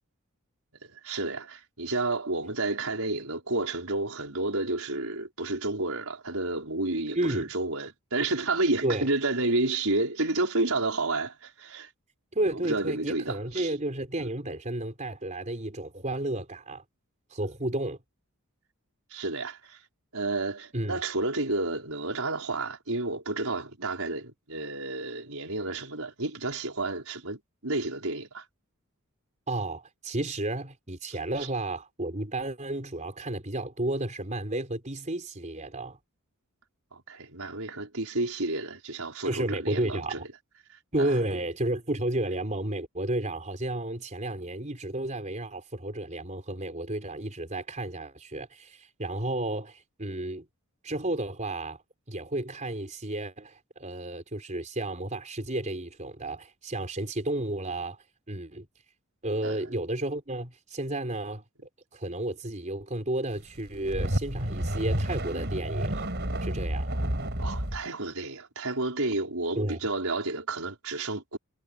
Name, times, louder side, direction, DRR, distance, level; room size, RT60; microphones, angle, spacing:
voice 1, 0.8-11.9 12.6-13.7 14.2-14.3 19.1-19.8 20.1-28.4 31.1-31.2 36.9-40.2 41.0-41.1 59.4-59.6 67.4-71.4, right 2 dB, 70° right, 5.6 m, -31 dB
voice 2, 7.1-7.5 8.8-9.1 12.3-16.8 17.3-18.0 20.7-21.0 29.5-36.0 39.2-40.2 40.9-50.5 50.8-51.8 52.1-58.0 58.3-58.7 59.2-61.4 61.9-66.1 66.4-66.9 69.5-69.8, right 1 dB, 35° right, 4.5 m, -32 dB
sound 1, 63.6-67.8, right 1 dB, 50° right, 5.7 m, -30 dB
head